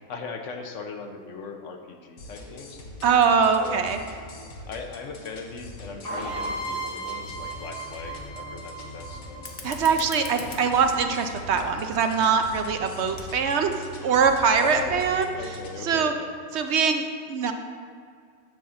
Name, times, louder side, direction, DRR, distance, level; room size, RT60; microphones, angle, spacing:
voice 1, 0.1-2.8 3.6-3.8 4.7-9.3 10.1-10.3 14.5-15.0 15.4-16.3, left 5 dB, 70° left, 5 dB, 1.1 m, -38 dB
sound 1, 2.2-15.9, left 1 dB, 85° left, 1.4 m, -42 dB
voice 2, 3.0-4.0 9.6-15.2 15.8-16.1 16.5-17.5, right 6 dB, 65° right, 6 dB, 0.8 m, -23 dB
sound 2, 6.0-9.8, right 2 dB, 80° right, 2.5 m, -35 dB
Fire, 9.3-14.3, left 3 dB, 45° left, 0.9 m, -45 dB
11.0 x 3.8 x 7.0 m, 2.2 s
omnidirectional pair, 1.4 m